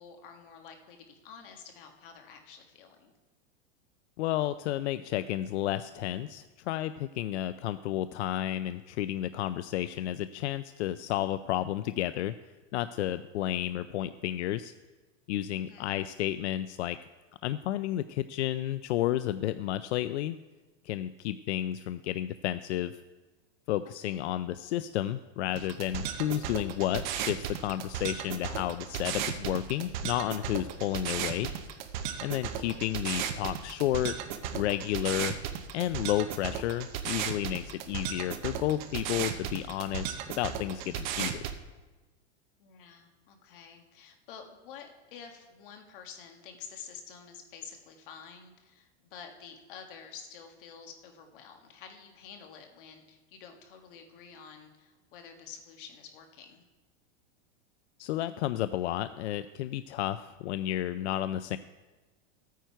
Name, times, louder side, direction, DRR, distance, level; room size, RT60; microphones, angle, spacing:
voice 1, 0.0-3.1 15.6-15.9 23.8-24.3 32.7-32.9 42.6-56.7, left 7 dB, 50° left, 4 dB, 1.7 m, -49 dB
voice 2, 4.2-12.3 12.7-14.7 15.3-17.0 17.4-20.4 20.8-22.9 23.7-31.5 32.2-34.2 34.5-35.4 35.7-41.3 58.0-61.6, left 13 dB, 80° left, 13 dB, 0.5 m, -31 dB
sound 1, 25.6-41.6, right 9 dB, 45° right, 0.8 m, -36 dB
14.5 x 9.3 x 4.6 m, 1.2 s
supercardioid pair, 170°, 33 cm